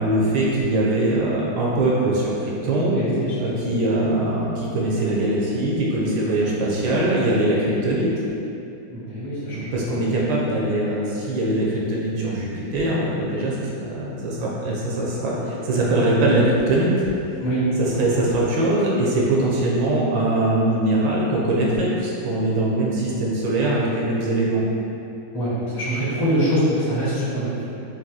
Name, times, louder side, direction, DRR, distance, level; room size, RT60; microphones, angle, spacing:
voice 1, 0.0-3.0 3.4-8.1 9.5-17.1 17.8-24.6, right 1 dB, 75° right, -4 dB, 1.4 m, -22 dB
voice 2, 2.9-3.5 8.9-9.7 17.4-17.6 25.3-27.8, equal, 15° left, -12 dB, 0.9 m, -24 dB
4.1 x 2.6 x 3.8 m, 2.8 s
omnidirectional pair, 2.1 m